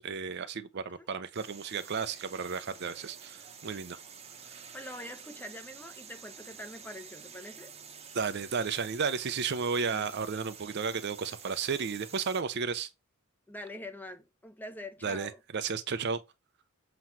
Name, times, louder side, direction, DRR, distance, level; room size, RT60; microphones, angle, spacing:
voice 1, 0.0-4.0 4.4-4.6 8.1-12.9 15.0-16.2, right 5 dB, 50° right, 0.5 m, -33 dB
sound 1, 1.3-12.4, right 6 dB, 30° right, 0.8 m, -49 dB
voice 2, 4.7-7.7 9.9-10.3 13.5-15.4, left 1 dB, 10° left, 0.7 m, -44 dB
7.5 x 3.0 x 5.7 m
head